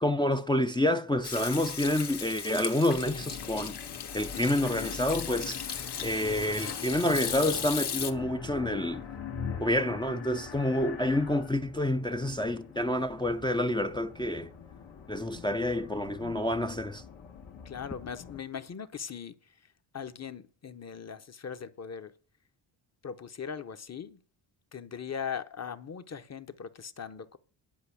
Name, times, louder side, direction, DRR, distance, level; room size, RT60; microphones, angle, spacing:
voice 1, 0.0-3.8 4.1-5.6 6.0-9.0 9.6-14.5 15.1-17.0, left 1 dB, 10° left, 0.4 m, -28 dB
Hands / Sink (filling or washing), 1.2-8.1, left 7 dB, 55° left, 1.4 m, -37 dB
sound 1, 2.9-18.4, left 7 dB, 80° left, 1.8 m, -42 dB
voice 2, 17.6-22.1 23.0-24.2 24.7-27.4, left 7 dB, 35° left, 0.8 m, -40 dB
10.5 x 5.5 x 8.5 m
cardioid pair, 110°, 46 cm